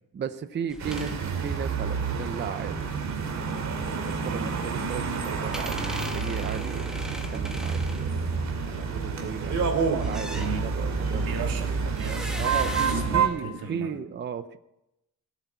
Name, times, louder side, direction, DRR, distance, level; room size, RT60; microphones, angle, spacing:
voice 1, 0.1-11.4 12.4-14.6, right 7 dB, 30° right, 11 dB, 0.6 m, -36 dB
sound 1, 0.7-1.2 5.5-8.8 10.0-10.9 11.9-13.7, equal, ahead, 1.4 m, -40 dB
sound 2, 0.8-13.3, right 5 dB, 55° right, 2.5 m, -28 dB
voice 2, 10.3-10.7 11.1-13.9, right 5 dB, 90° right, 2 dB, 2.9 m, -36 dB
17.0 x 8.2 x 9.1 m, 0.90 s
cardioid pair, 160°, 34 cm